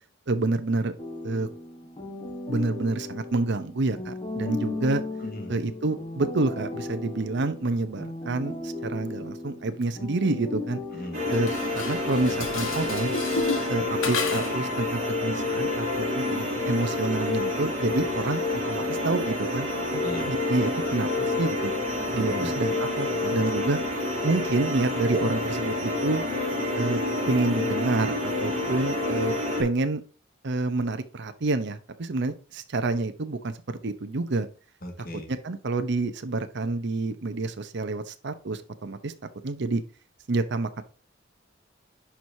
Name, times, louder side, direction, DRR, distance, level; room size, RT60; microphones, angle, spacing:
voice 1, 0.3-0.9 1.2-1.5 2.5-5.0 5.5-10.8 11.3-13.1 13.7-18.4 18.7-21.7 22.1-23.8 24.2-26.2 26.8-27.0 27.3-29.3 29.6-30.0 30.4-33.5 33.8-34.5 35.3-39.1 39.4-39.8 40.3-40.8, right 3 dB, 60° right, 9 dB, 0.7 m, -28 dB
sound 1, 1.0-11.9, left 2 dB, 25° left, 1.3 m, -36 dB
voice 2, 5.2-5.5 10.9-11.2 20.0-20.3 22.2-22.6 34.8-35.3, equal, 50° left, 3 dB, 1.8 m, -36 dB
sound 2, 11.1-29.6, left 2 dB, 40° right, 4.0 m, -28 dB
Dishes pots and pans, 11.3-14.7, left 4 dB, 90° left, 1.3 m, -32 dB
10.0 x 4.7 x 2.7 m, 0.37 s
head